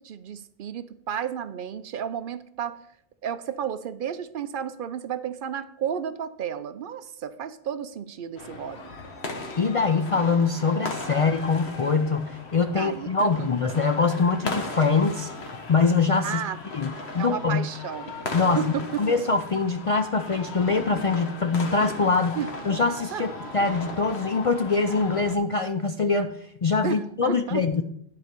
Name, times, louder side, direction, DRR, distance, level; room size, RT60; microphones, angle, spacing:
voice 1, 0.0-2.8 3.2-8.8 12.7-13.3 16.2-16.6 17.2-18.1 18.6-19.1 22.4-22.5 23.1-23.3 26.8-27.6, right 8 dB, 65° right, 13 dB, 0.7 m, -32 dB
sound 1, 8.4-25.3, left 3 dB, 90° left, 1.4 m, -37 dB
voice 2, 9.6-15.3 15.7-16.4 16.7-17.7 18.3-22.4 22.6-26.4 26.6-27.8, left 4 dB, 50° left, 8 dB, 0.4 m, -23 dB
11.0 x 4.9 x 6.6 m, 0.71 s
omnidirectional pair, 1.1 m